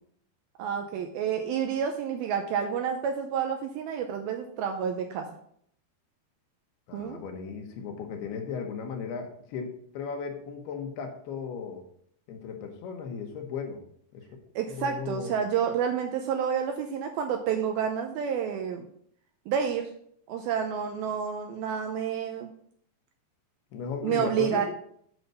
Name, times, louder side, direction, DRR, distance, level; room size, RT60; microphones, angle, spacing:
voice 1, 0.6-5.3 6.9-7.2 14.6-18.9 19.5-19.9 20.3-22.5 24.0-24.7, right 8 dB, 85° right, 4 dB, 2.2 m, -29 dB
voice 2, 6.9-11.8 12.3-13.8 14.1-14.3 14.7-15.4 23.7-24.7, left 6 dB, 75° left, 4 dB, 2.9 m, -36 dB
8.0 x 5.8 x 5.4 m, 0.66 s
omnidirectional pair, 4.9 m